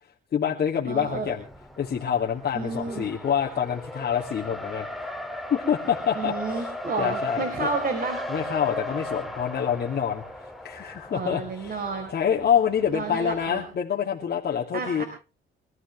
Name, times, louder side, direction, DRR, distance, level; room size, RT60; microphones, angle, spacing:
voice 1, 0.3-1.4 1.8-4.9 5.5-6.7 7.0-7.7 8.3-10.2 10.6-11.8 12.1-15.0, left 8 dB, 55° left, -3 dB, 2.7 m, -26 dB
voice 2, 0.9-1.3 2.5-3.1 6.1-8.2 11.1-12.1 12.9-13.6 14.7-15.0, right 4 dB, 50° right, 5 dB, 4.3 m, -31 dB
Race car auto racing, 1.0-13.7, left 1 dB, ahead, 2.6 m, -37 dB
25.0 x 14.0 x 3.4 m, 0.34 s
cardioid pair, 90°, 20 cm